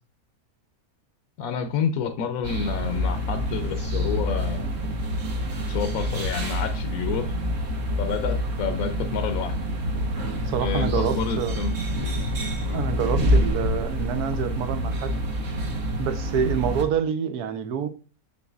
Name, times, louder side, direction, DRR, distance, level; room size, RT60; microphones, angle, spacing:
voice 1, 1.4-4.7 5.7-7.4 8.0-9.6 10.6-11.7 12.6-12.9, left 6 dB, 70° left, 1.0 m, -29 dB
sound 1, 2.4-16.8, equal, 55° right, 1.4 m, -27 dB
voice 2, 10.5-11.6 12.7-15.2 16.0-17.9, right 8 dB, 80° right, 1.3 m, -27 dB
6.9 x 6.2 x 2.4 m
omnidirectional pair, 1.6 m